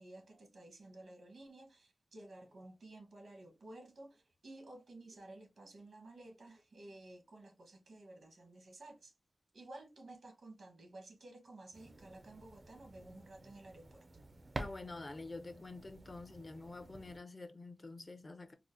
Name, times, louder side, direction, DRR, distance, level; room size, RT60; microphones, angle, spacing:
voice 1, 0.0-9.1 9.5-14.0, right 2 dB, 80° right, 1.0 m, -54 dB
sound 1, 11.7-17.2, right 2 dB, 40° right, 0.4 m, -50 dB
voice 2, 14.6-18.5, left 2 dB, 35° left, 0.5 m, -47 dB
4.7 x 2.0 x 2.5 m
wide cardioid pair, 115°, 0 cm